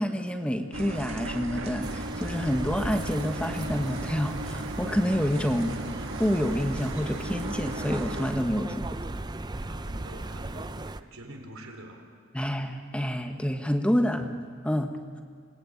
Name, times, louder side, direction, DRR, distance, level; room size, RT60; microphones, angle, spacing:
voice 1, 0.0-5.8 6.2-8.9 12.3-14.3 14.6-15.2, equal, 5° left, 5 dB, 1.3 m, -28 dB
sound 1, 0.7-8.3, right 1 dB, 65° right, 1.6 m, -36 dB
sound 2, 1.8-11.0, right 2 dB, 20° right, 0.6 m, -37 dB
voice 2, 9.7-12.1, right 1 dB, 85° right, 3 dB, 3.8 m, -45 dB
26.0 x 19.0 x 8.9 m, 2.1 s
head